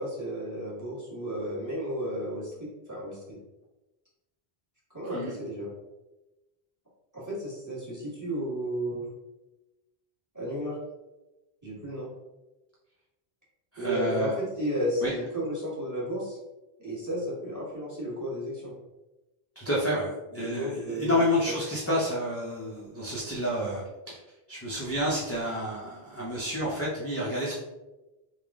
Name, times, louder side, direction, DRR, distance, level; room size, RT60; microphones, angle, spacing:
voice 1, 0.0-3.4 4.9-5.7 7.1-9.0 10.3-10.8 11.6-12.1 13.8-16.4 16.8-18.7 20.4-21.6 21.9-22.0, equal, 15° right, -7 dB, 1.5 m, -33 dB
voice 2, 13.7-14.3 15.0-15.1 19.6-24.2 24.5-27.5, equal, 20° left, -6 dB, 0.5 m, -30 dB
3.5 x 2.4 x 3.5 m, 1.1 s
omnidirectional pair, 1.0 m